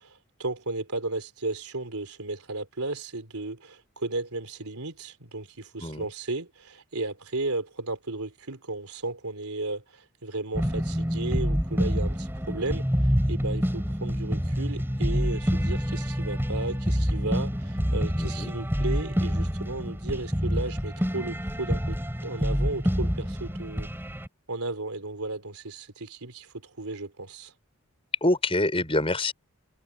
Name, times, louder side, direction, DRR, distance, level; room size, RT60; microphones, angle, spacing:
voice 1, 0.0-12.9 13.3-22.0 22.2-23.9 24.5-27.5, right 2 dB, 90° right, 3.9 m, -34 dB
sound 1, 10.5-24.3, equal, 10° right, 5.9 m, -27 dB
voice 2, 18.2-18.5 28.2-29.3, left 2 dB, 25° left, 6.0 m, -26 dB
head